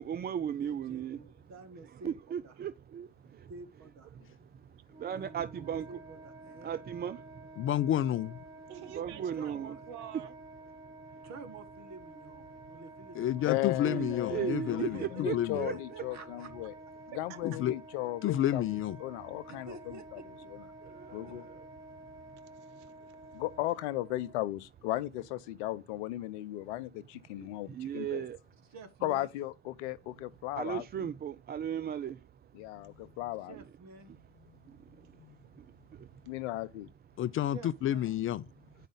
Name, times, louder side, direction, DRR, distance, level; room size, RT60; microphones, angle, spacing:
voice 1, 0.0-1.2 2.0-3.5 4.1-4.5 5.0-6.0 6.6-7.5 9.0-9.8 13.8-14.9 15.2-15.7 20.8-21.7 27.4-28.4 30.6-32.2 34.7-34.8 35.5-35.7 35.9-36.1, right 9 dB, 25° right, 0.5 m, -37 dB
voice 2, 0.5-2.2 2.4-2.7 3.5-4.2 5.1-6.8 9.3-9.9 11.2-13.5 14.2-14.3 14.8-15.3 15.7-16.7 19.5-20.5 28.7-29.3 33.5-34.2 37.5-38.1, right 4 dB, 50° right, 1.9 m, -50 dB
Wind instrument woodwind instrument, 4.9-24.4, right 2 dB, 10° right, 1.7 m, -51 dB
voice 3, 7.6-8.4 13.1-15.7 17.4-17.7 18.2-19.0 37.2-38.4, left 12 dB, 35° left, 0.5 m, -30 dB
voice 4, 8.7-10.3 17.1-17.6 22.4-23.4, right 11 dB, 70° right, 1.0 m, -49 dB
voice 5, 13.5-16.7 17.1-20.2 21.1-21.5 23.3-28.2 29.0-31.1 32.5-33.6 36.3-36.9, left 16 dB, 70° left, 0.7 m, -36 dB
9.1 x 5.0 x 3.9 m
figure-of-eight pair, 55°, 36 cm